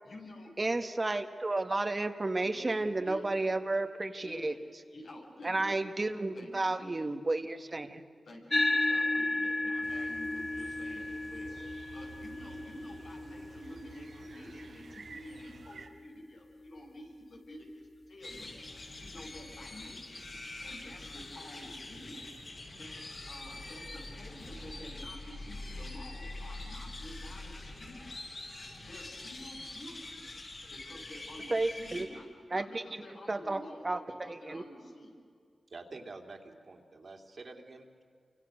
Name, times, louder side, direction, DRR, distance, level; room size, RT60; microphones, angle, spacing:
voice 1, 0.0-0.5 2.4-2.5 2.8-3.2 4.2-4.6 4.9-5.7 6.3-7.0 8.2-11.6 11.9-18.7 19.0-20.2 20.6-22.3 22.8-23.0 23.2-28.3 28.8-30.3 30.7-35.2, left 1 dB, 80° left, -2 dB, 6.9 m, -49 dB
voice 2, 0.6-4.5 5.4-8.0 31.5-32.1 32.5-32.8 33.3-34.6, right 2 dB, 35° right, 8 dB, 1.7 m, -32 dB
sound 1, 8.5-17.2, left 2 dB, 25° left, 0.7 m, -35 dB
sound 2, 9.8-15.9, right 4 dB, 75° right, 2.4 m, -52 dB
sound 3, 18.2-32.0, left 2 dB, 55° left, 5.5 m, -44 dB
voice 3, 35.7-38.0, right 3 dB, 55° right, 3 dB, 3.2 m, -48 dB
29.0 x 25.0 x 6.6 m, 2.2 s
cardioid pair, 55°, 0 cm